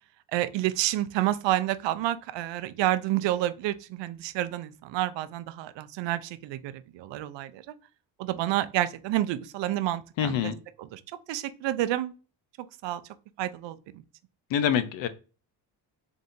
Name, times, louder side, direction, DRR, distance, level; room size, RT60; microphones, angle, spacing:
voice 1, 0.3-7.6 8.2-10.5 10.8-11.0 11.3-12.1 12.8-13.0 13.4-14.0, right 14 dB, 65° right, 0.5 m, -29 dB
voice 2, 10.2-10.6 14.5-15.1, left 9 dB, 65° left, 0.7 m, -25 dB
4.0 x 3.6 x 2.6 m
cardioid pair, 150°, 48 cm